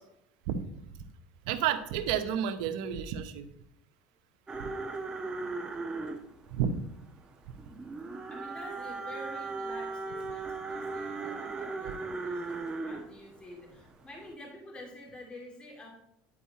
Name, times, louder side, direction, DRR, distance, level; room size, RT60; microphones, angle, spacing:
voice 1, 1.5-3.5 4.6-4.7 6.5-6.7, right 9 dB, 80° right, 9 dB, 0.8 m, -30 dB
sound 1, 4.5-13.1 13.6-13.9 14.2-14.3, right 3 dB, 20° right, 1.1 m, -37 dB
voice 2, 8.3-15.9, left 1 dB, 25° left, -1 dB, 2.7 m, -48 dB
10.0 x 4.7 x 4.2 m, 0.80 s
supercardioid pair, 110°, 4 cm